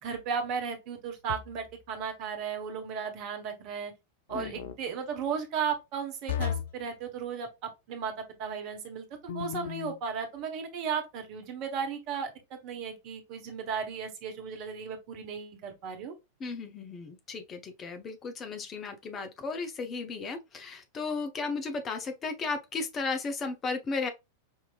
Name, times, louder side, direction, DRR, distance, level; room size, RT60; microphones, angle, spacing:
voice 1, 0.0-3.9 4.3-16.1, right 6 dB, 40° right, 1.1 m, -35 dB
sound 1, 1.3-1.8 4.3-4.8 6.3-6.8 9.3-10.0, left 8 dB, 60° left, 0.5 m, -35 dB
voice 2, 4.3-4.7 16.4-24.1, left 4 dB, 25° left, 0.8 m, -35 dB
5.5 x 2.9 x 2.3 m
figure-of-eight pair, 90°, 0 cm